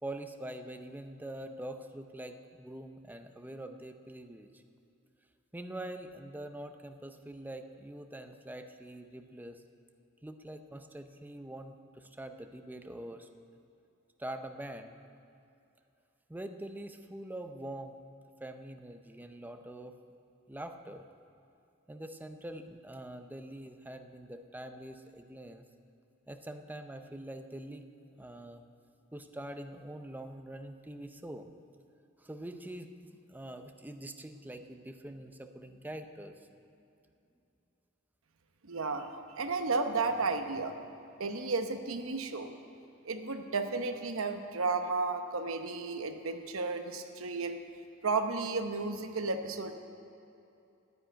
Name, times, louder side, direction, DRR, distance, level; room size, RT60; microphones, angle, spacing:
voice 1, 0.0-4.6 5.5-9.6 10.2-13.3 14.2-15.0 16.3-18.0 18.4-19.9 20.5-21.0 21.9-25.6 26.3-27.8 28.2-28.6 29.1-31.5 32.2-36.4, right 1 dB, 10° right, 7 dB, 0.5 m, -44 dB
voice 2, 38.7-40.7 41.2-42.5 43.0-47.6 48.0-49.7, right 3 dB, 75° right, 7 dB, 0.9 m, -33 dB
9.6 x 8.9 x 9.1 m, 2.7 s
head